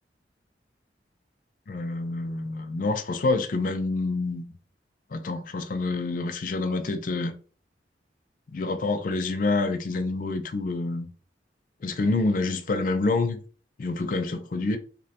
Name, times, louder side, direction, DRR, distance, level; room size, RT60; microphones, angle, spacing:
voice 1, 1.7-4.5 5.1-7.3 8.5-11.1 11.8-13.4 13.8-14.8, left 3 dB, 50° left, 0.4 m, -27 dB
2.6 x 2.1 x 2.8 m
head